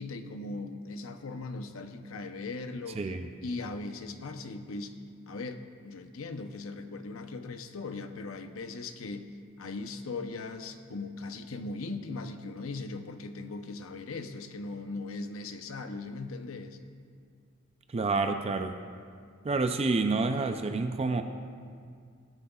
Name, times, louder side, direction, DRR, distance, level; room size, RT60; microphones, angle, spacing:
voice 1, 0.0-3.1 3.4-5.0 5.3-9.3 9.6-16.8, left 3 dB, 75° left, 8 dB, 0.7 m, -39 dB
voice 2, 3.0-3.3 17.9-18.7 19.4-21.2, right 3 dB, 30° right, 7 dB, 0.4 m, -28 dB
16.5 x 11.5 x 2.3 m, 2.1 s
head